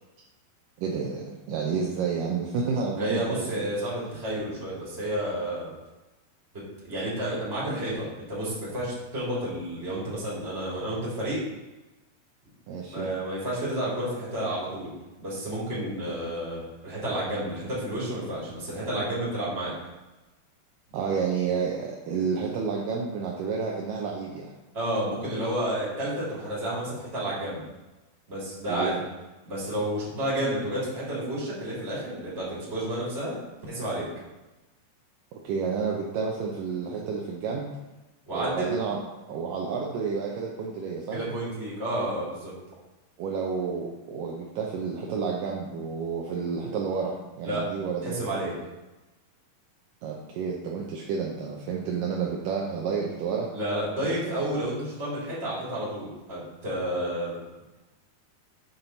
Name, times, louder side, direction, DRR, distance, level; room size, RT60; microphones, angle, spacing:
voice 1, 0.8-3.9 12.7-13.1 20.9-24.5 28.7-28.9 35.3-37.7 38.3-39.0 39.3-41.2 43.2-48.1 50.0-53.5 54.0-54.1 54.4-54.6, right 5 dB, 80° right, -2 dB, 1.9 m, -30 dB
voice 2, 3.0-5.7 6.5-11.4 12.9-14.9 15.2-19.7 24.7-27.6 28.3-29.0 29.4-33.3 33.7-34.1 38.3-38.7 41.1-42.5 47.4-47.6 48.0-48.5 53.5-57.4, right 1 dB, 20° right, -8 dB, 2.4 m, -31 dB
7.2 x 6.0 x 4.0 m, 1.1 s
omnidirectional pair, 4.8 m